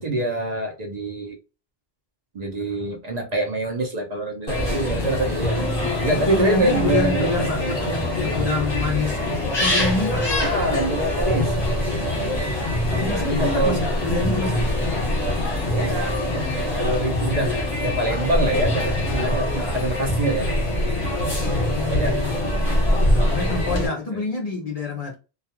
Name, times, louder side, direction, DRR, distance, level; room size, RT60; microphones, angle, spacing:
voice 1, 0.0-1.4 2.3-5.7 6.0-7.8 10.4-11.6 13.1-13.8 15.7-16.2 16.5-20.5 21.7-22.8 23.9-24.2, right 1 dB, 50° right, 0.7 m, -25 dB
sound 1, 4.5-23.9, left 1 dB, 25° left, 1.0 m, -24 dB
voice 2, 6.1-10.4 12.9-14.7 21.4-22.4 23.2-25.2, left 3 dB, 50° left, 0.5 m, -27 dB
sound 2, 19.1-22.2 22.5-22.6, right 1 dB, 75° right, 0.8 m, -32 dB
2.3 x 2.3 x 2.8 m
omnidirectional pair, 1.0 m